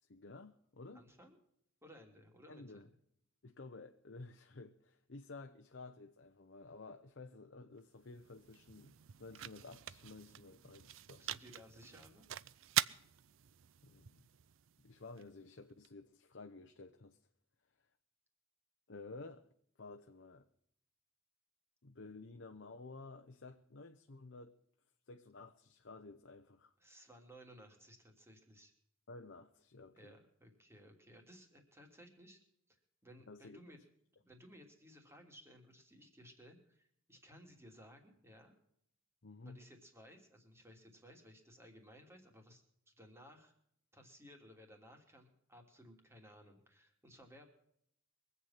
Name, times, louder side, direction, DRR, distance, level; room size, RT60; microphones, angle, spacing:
voice 1, 0.1-1.0 2.5-2.9 3.4-11.2 13.8-14.2 14.8-17.2 18.9-19.5 19.8-20.5 21.8-24.6 25.1-26.7 29.1-30.1 33.3-33.6 39.2-39.6, left 3 dB, 60° left, 0.9 m, -53 dB
voice 2, 0.9-1.4 1.8-3.0 11.2-12.3 26.8-28.7 29.9-32.4 32.7-32.8 33.0-33.8 34.2-38.5 39.4-43.5 43.9-47.5, equal, 15° right, 3.0 m, -59 dB
sound 1, 7.8-15.9, right 12 dB, 70° right, 0.5 m, -44 dB
23.5 x 8.3 x 5.8 m
head